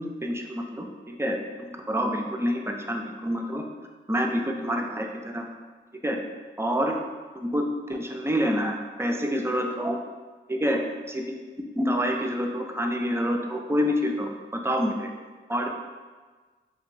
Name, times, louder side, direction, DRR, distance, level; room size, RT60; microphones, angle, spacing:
voice 1, 0.0-3.6 4.1-5.5 6.0-6.2 6.6-7.0 7.3-10.0 10.5-11.3 11.7-15.1 15.5-15.7, equal, 10° right, 2 dB, 0.5 m, -27 dB
2.9 x 2.5 x 3.2 m, 1.4 s
supercardioid pair, 45°, 21 cm